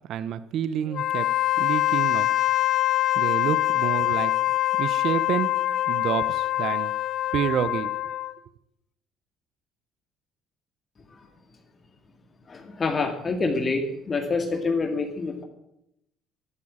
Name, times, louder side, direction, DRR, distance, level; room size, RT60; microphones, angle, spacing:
voice 1, 0.1-1.3 1.6-2.3 3.1-4.3 4.8-5.5 5.9-6.9 7.3-7.9, right 10 dB, 60° right, 15 dB, 0.8 m, -28 dB
Wind instrument woodwind instrument, 0.9-8.4, left 15 dB, 55° left, 0.5 m, -24 dB
voice 2, 12.5-15.4, left 3 dB, 30° left, 4 dB, 2.2 m, -27 dB
12.0 x 11.5 x 8.7 m, 0.82 s
cardioid pair, 120°, 0 cm